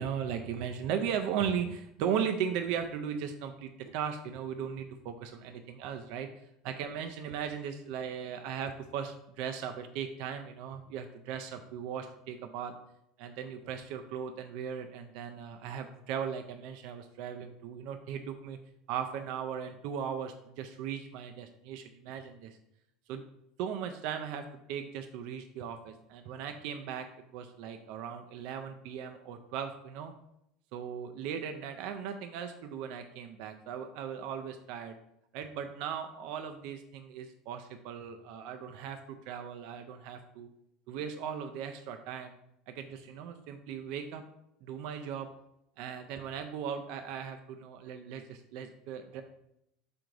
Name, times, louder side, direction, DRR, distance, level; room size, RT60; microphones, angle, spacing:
voice 1, 0.0-6.3 6.6-12.7 13.2-18.6 18.9-22.6 23.1-23.2 23.6-27.1 27.3-30.1 30.7-35.0 35.3-40.5 40.9-42.3 42.7-44.2 44.6-45.3 45.8-49.2, right 8 dB, 70° right, 6 dB, 0.3 m, -37 dB
3.7 x 2.5 x 4.6 m, 0.80 s
supercardioid pair, 110°, 0 cm